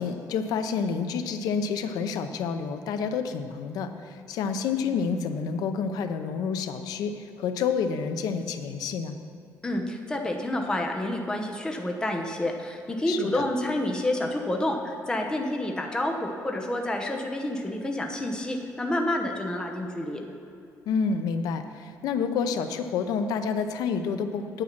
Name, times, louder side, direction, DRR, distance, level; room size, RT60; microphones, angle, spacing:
voice 1, 0.0-9.2 13.1-13.4 20.9-24.6, left 6 dB, 80° left, 8 dB, 0.7 m, -29 dB
voice 2, 9.6-20.2, left 1 dB, 10° left, 2 dB, 0.9 m, -29 dB
9.1 x 8.5 x 5.9 m, 2.7 s
cardioid pair, 150°, 6 cm